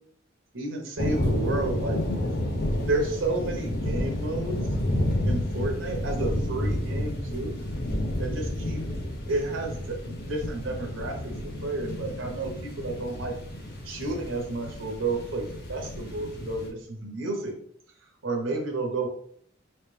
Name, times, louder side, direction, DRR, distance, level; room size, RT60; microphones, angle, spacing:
voice 1, 0.5-2.0 2.8-4.6 5.3-7.6 8.2-8.8 9.3-13.4 13.8-17.6 18.2-19.1, right 2 dB, 90° right, 3 dB, 0.9 m, -31 dB
sound 1, 1.0-16.7, left 1 dB, 55° left, 1.0 m, -30 dB
4.5 x 3.2 x 3.2 m, 0.64 s
head